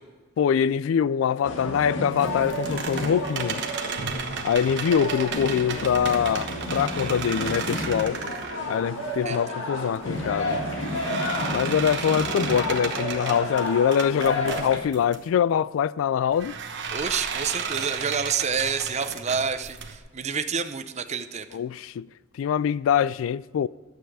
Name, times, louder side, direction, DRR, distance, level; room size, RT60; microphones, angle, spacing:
voice 1, 0.4-3.7 4.4-8.2 8.7-10.6 11.5-16.6 21.5-22.1 22.4-23.7, left 8 dB, 90° left, 0.3 m, -24 dB
sound 1, 1.4-14.8, left 1 dB, 70° left, 1.8 m, -31 dB
sound 2, 2.1-9.4 9.8-15.2 16.3-20.0, right 6 dB, 60° right, 1.1 m, -34 dB
voice 2, 16.9-21.5, right 6 dB, 35° right, 0.6 m, -28 dB
11.5 x 8.0 x 4.8 m
head